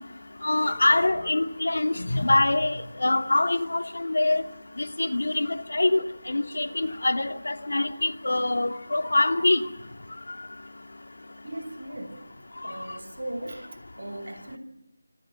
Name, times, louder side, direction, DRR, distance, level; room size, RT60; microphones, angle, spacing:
voice 1, 0.4-4.4 4.8-9.6, left 2 dB, 85° left, 7 dB, 2.5 m, -24 dB
voice 2, 11.3-12.3 12.6-14.6, right 1 dB, 90° right, 8 dB, 7.4 m, -38 dB
27.0 x 25.5 x 6.0 m, 0.84 s
figure-of-eight pair, 180°, 0 cm